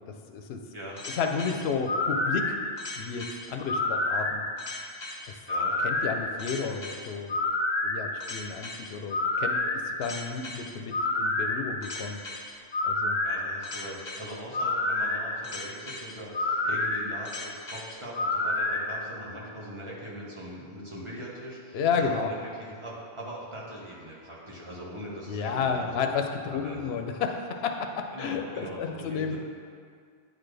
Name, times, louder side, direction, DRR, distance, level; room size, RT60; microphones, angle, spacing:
voice 1, 0.3-0.6 1.1-2.6 3.0-4.4 5.3-5.4 5.8-7.3 7.8-12.2 12.8-13.2 21.7-22.3 25.3-29.4, left 5 dB, 85° left, 4 dB, 0.8 m, -31 dB
sound 1, 1.0-18.8, left 2 dB, 35° left, 0.4 m, -29 dB
voice 2, 5.4-5.8 13.2-25.9 26.5-26.9 28.1-29.4, equal, 30° right, -6 dB, 1.1 m, -41 dB
9.2 x 4.2 x 3.3 m, 2.2 s
omnidirectional pair, 1.0 m